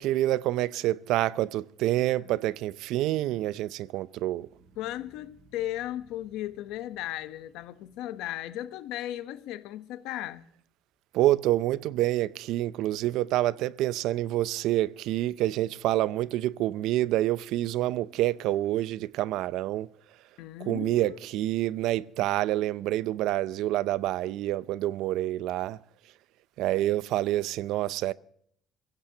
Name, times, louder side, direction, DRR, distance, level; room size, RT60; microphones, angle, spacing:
voice 1, 0.0-4.5 11.1-19.9 20.7-25.8 26.6-28.1, right 14 dB, 75° right, 0.5 m, -27 dB
sound 1, 4.5-10.8 11.2-11.8, right 3 dB, 50° right, 7.7 m, -63 dB
voice 2, 4.8-10.5 20.4-21.2, left 13 dB, 85° left, 0.9 m, -36 dB
24.5 x 16.0 x 2.8 m
cardioid pair, 155°, 0 cm